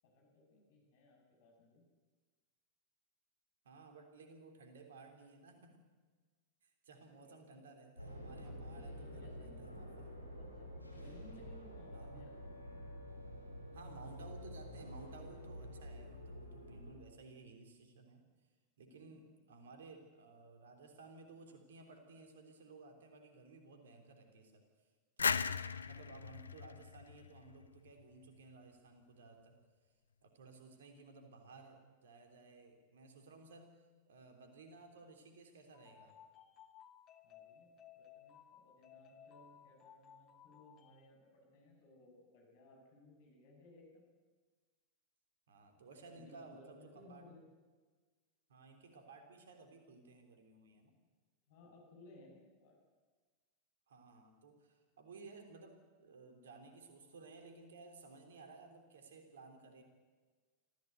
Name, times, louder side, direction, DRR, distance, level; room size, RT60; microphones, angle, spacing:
voice 1, 0.0-1.9 7.2-7.7 8.6-9.8 10.4-10.7 11.0-12.6 18.9-19.2 37.2-44.1 46.1-47.4 51.5-52.8, left 2 dB, 50° left, 1 dB, 7.4 m, -61 dB
voice 2, 3.6-5.8 6.6-10.1 11.9-12.3 13.7-18.2 18.8-24.6 25.2-29.6 30.2-36.1 45.5-47.2 48.5-50.9 53.9-59.8, right 3 dB, 65° right, 5 dB, 3.4 m, -57 dB
sound 1, 8.0-16.9, equal, 85° right, 6.4 m, -49 dB
sound 2, 25.2-27.9, left 5 dB, 75° left, 0.6 m, -37 dB
sound 3, 35.7-41.1, left 9 dB, 30° left, 1.4 m, -60 dB
25.0 x 15.5 x 8.1 m, 1.4 s
figure-of-eight pair, 90°, 0 cm